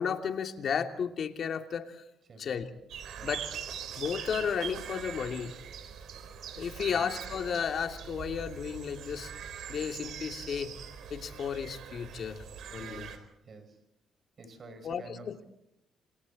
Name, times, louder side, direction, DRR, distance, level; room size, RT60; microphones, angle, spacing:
voice 1, 0.0-2.0 2.4-2.7 3.2-3.5 4.0-5.5 6.6-9.3 9.7-10.7 11.1-12.4 12.7-13.1 14.8-15.4, left 7 dB, 60° left, 5 dB, 2.7 m, -33 dB
sound 1, 2.9-13.2, right 8 dB, 70° right, 4.3 m, -42 dB
voice 2, 12.8-13.8 14.4-15.3, right 3 dB, 45° right, 9 dB, 6.0 m, -49 dB
28.0 x 27.0 x 4.3 m, 0.82 s
cardioid pair, 90°, 0 cm